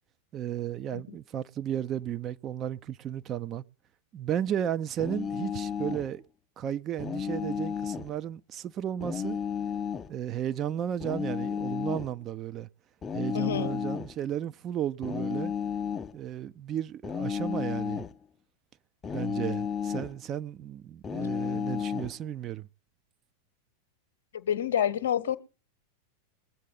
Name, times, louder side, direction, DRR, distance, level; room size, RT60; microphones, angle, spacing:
voice 1, 0.3-3.6 4.1-6.2 6.6-9.4 10.1-12.7 13.1-15.5 16.1-18.0 19.1-22.7, right 10 dB, 30° right, 0.6 m, -34 dB
sound 1, 5.0-6.1 7.0-8.1 9.0-10.1 11.0-12.1 13.0-14.2 15.0-16.2 17.0-18.2 19.0-20.2 21.0-22.2, left 7 dB, 20° left, 0.6 m, -33 dB
voice 2, 13.3-13.8 24.3-25.4, left 9 dB, 60° left, 1.0 m, -28 dB
21.5 x 8.3 x 3.9 m
figure-of-eight pair, 90°, 0 cm